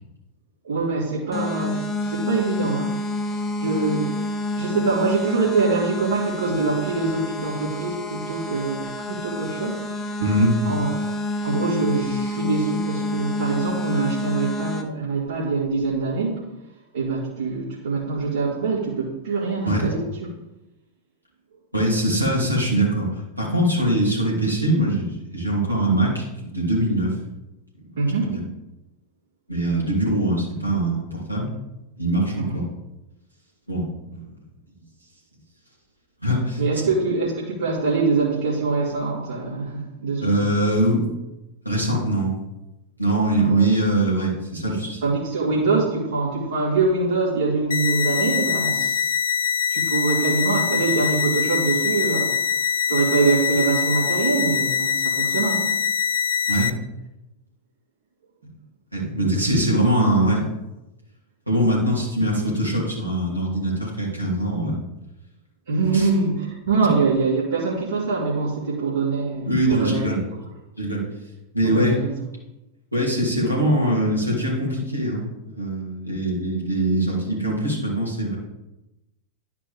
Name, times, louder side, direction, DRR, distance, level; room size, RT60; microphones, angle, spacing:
voice 1, 0.6-4.2 4.5-9.8 10.6-11.2 11.4-16.4 16.9-20.0 28.0-28.3 32.4-32.5 36.6-40.4 43.3-43.7 45.0-49.1 49.7-52.3 52.6-55.7 58.4-58.5 65.7-70.1 71.6-72.1, right 4 dB, 65° right, -8 dB, 2.3 m, -24 dB
sound 1, 1.3-14.8, left 1 dB, 15° left, 1.1 m, -28 dB
voice 2, 10.2-10.5 19.6-19.9 21.7-27.2 28.2-28.4 29.5-31.5 32.0-32.6 33.7-34.3 36.2-36.6 40.2-41.0 41.6-42.3 43.0-45.0 56.5-56.7 58.9-60.5 61.5-64.8 65.9-66.1 69.5-70.2 70.8-71.0 71.5-72.0 72.9-78.3, right 1 dB, 90° right, -4 dB, 2.9 m, -22 dB
sound 2, 47.7-56.7, left 7 dB, 65° left, 0.5 m, -23 dB
11.5 x 5.0 x 3.5 m, 0.95 s
figure-of-eight pair, 90°, 0 cm